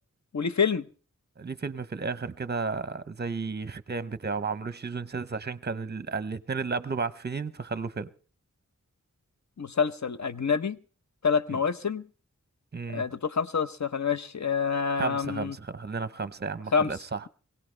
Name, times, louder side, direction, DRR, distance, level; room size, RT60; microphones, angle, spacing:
voice 1, 0.3-0.9 9.6-10.8 11.2-12.0 12.9-15.5 16.7-16.9, left 6 dB, 60° left, 0.8 m, -27 dB
voice 2, 1.4-8.1 11.5-11.6 12.7-13.0 15.0-17.2, right 4 dB, 35° right, 0.6 m, -33 dB
22.5 x 17.0 x 3.2 m
wide cardioid pair, 60°, 31 cm